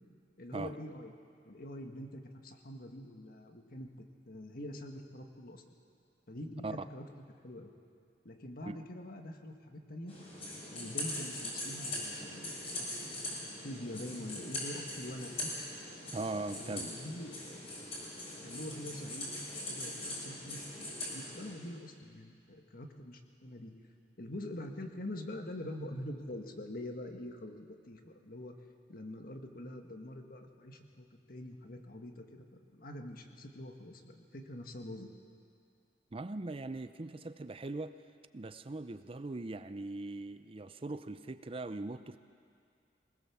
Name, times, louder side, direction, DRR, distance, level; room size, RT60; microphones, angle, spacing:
voice 1, 0.4-1.1 1.4-5.6 6.3-7.1 7.4-7.7 8.2-10.2 10.7-13.2 13.6-15.5 16.5-17.9 18.4-23.7 24.2-28.5 28.9-35.1, left 1 dB, 55° left, 4 dB, 1.6 m, -45 dB
sound 1, 10.1-21.5, left 1 dB, 35° left, 6.7 m, -41 dB
voice 2, 16.1-16.9 36.1-38.0 38.3-42.2, right 2 dB, 30° right, 11 dB, 0.5 m, -40 dB
20.5 x 19.5 x 7.2 m, 2.3 s
head